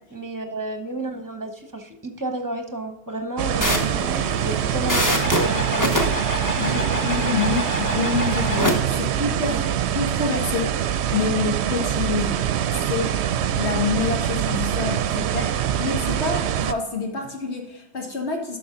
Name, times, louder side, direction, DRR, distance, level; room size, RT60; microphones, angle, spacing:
voice 1, 0.1-6.0 9.5-9.7, right 1 dB, 20° right, 5 dB, 1.1 m, -31 dB
sound 1, 3.4-16.7, right 10 dB, 75° right, 0.8 m, -24 dB
sound 2, 3.6-8.7, left 1 dB, 15° left, 1.2 m, -25 dB
voice 2, 6.6-9.6 9.9-10.7 11.1-12.4 12.9-13.1 13.6-18.6, left 4 dB, 75° left, 1 dB, 2.2 m, -27 dB
11.0 x 6.3 x 3.8 m, 0.90 s
omnidirectional pair, 1.2 m